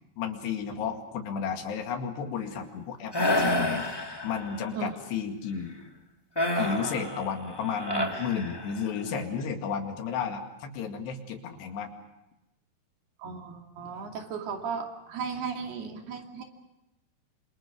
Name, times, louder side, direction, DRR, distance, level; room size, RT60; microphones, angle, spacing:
voice 1, 0.2-3.8 4.2-5.8 6.6-11.9, left 6 dB, 85° left, 4 dB, 4.4 m, -33 dB
sound 1, 3.1-4.7 6.4-9.0, left 1 dB, 10° left, 1.2 m, -29 dB
voice 2, 13.2-16.4, right 5 dB, 75° right, 3 dB, 4.6 m, -35 dB
27.5 x 27.0 x 5.2 m, 0.95 s
omnidirectional pair, 4.7 m